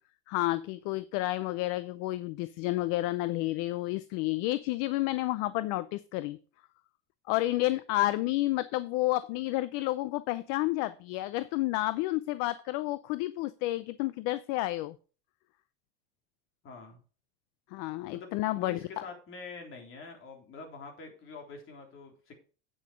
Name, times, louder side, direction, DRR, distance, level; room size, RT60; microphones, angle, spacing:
voice 1, 0.3-6.4 7.3-14.9 17.7-18.8, left 17 dB, 65° left, 15 dB, 0.6 m, -30 dB
voice 2, 16.6-17.0 18.1-22.3, left 4 dB, 40° left, 2 dB, 3.5 m, -46 dB
8.9 x 6.8 x 4.9 m, 0.39 s
supercardioid pair, 120°, 32 cm